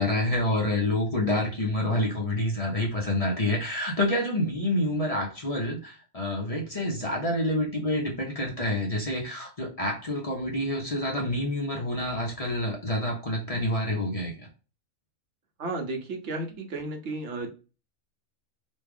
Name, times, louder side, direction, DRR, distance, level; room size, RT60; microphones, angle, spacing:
voice 1, 0.0-14.3, left 1 dB, 35° left, -1 dB, 0.7 m, -28 dB
voice 2, 15.6-17.5, right 2 dB, 60° right, 4 dB, 1.0 m, -33 dB
3.1 x 2.3 x 3.4 m, 0.34 s
omnidirectional pair, 1.5 m